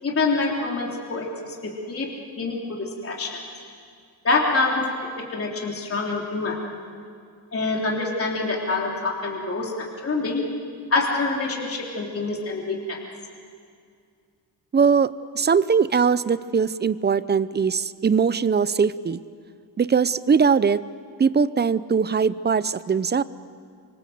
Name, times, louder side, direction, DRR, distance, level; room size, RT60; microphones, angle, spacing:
voice 1, 0.0-2.1 2.4-3.5 4.2-6.6 7.5-10.5 10.9-13.0, left 3 dB, 35° left, -1 dB, 3.4 m, -26 dB
voice 2, 14.7-19.2 19.8-20.8 21.2-23.2, right 6 dB, 25° right, 16 dB, 0.6 m, -21 dB
25.5 x 25.0 x 7.8 m, 2.2 s
cardioid pair, 130°, 38 cm